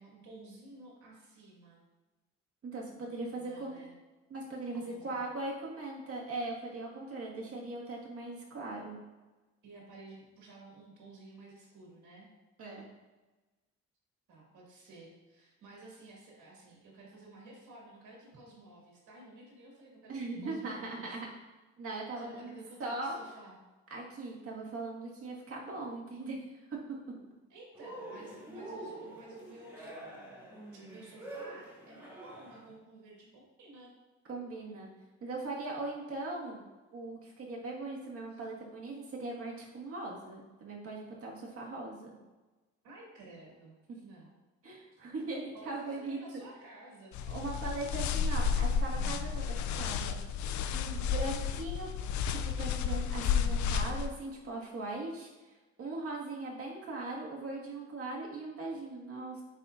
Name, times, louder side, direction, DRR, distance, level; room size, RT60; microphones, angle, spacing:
voice 1, 0.0-1.8 3.4-3.9 4.7-5.2 9.6-12.3 14.3-20.1 20.4-21.1 22.2-23.6 27.5-33.9 38.3-38.4 42.8-43.7 44.0-44.3 44.9-45.0 45.5-47.2, right 2 dB, 80° right, -3 dB, 2.0 m, -53 dB
voice 2, 2.6-3.8 4.3-9.0 12.6-12.9 20.1-21.3 21.8-23.2 23.9-26.4 34.3-34.9 35.2-36.6 36.9-42.2 43.9-44.0 44.6-46.2 47.3-50.1 50.7-51.9 52.3-55.3 55.8-59.4, right 2 dB, 50° right, -3 dB, 1.8 m, -40 dB
Cheering, 27.7-32.7, right 2 dB, 10° right, 1.9 m, -46 dB
sound 1, 47.1-54.1, left 6 dB, 70° left, 0.4 m, -32 dB
9.7 x 4.1 x 2.5 m, 1.2 s
cardioid pair, 90°, 30 cm